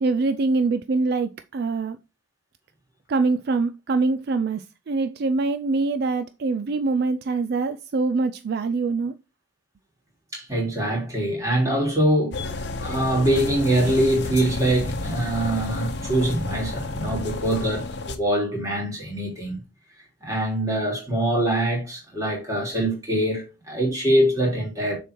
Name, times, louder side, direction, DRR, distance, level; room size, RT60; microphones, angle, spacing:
voice 1, 0.0-2.0 3.1-9.1, right 3 dB, 50° right, 0.4 m, -24 dB
voice 2, 10.3-12.4 12.8-19.6 20.2-25.0, right 1 dB, 15° right, 3.3 m, -23 dB
sound 1, 12.3-18.2, left 2 dB, 55° left, 0.9 m, -31 dB
6.7 x 4.5 x 4.5 m
head